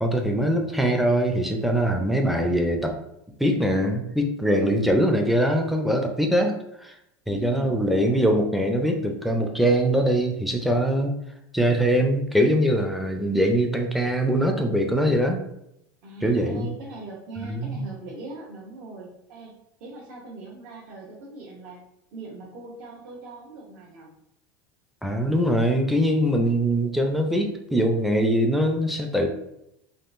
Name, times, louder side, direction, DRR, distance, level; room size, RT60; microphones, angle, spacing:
voice 1, 0.0-3.0 3.4-7.0 7.3-11.2 11.5-15.4 16.2-16.7 17.4-17.9 25.0-29.3, equal, ahead, 3 dB, 0.4 m, -22 dB
voice 2, 4.5-5.0 7.3-7.9 16.0-19.5 19.8-21.8 22.1-24.1, right 3 dB, 65° right, -5 dB, 0.8 m, -40 dB
3.6 x 2.3 x 2.5 m, 0.81 s
supercardioid pair, 135°, 12 cm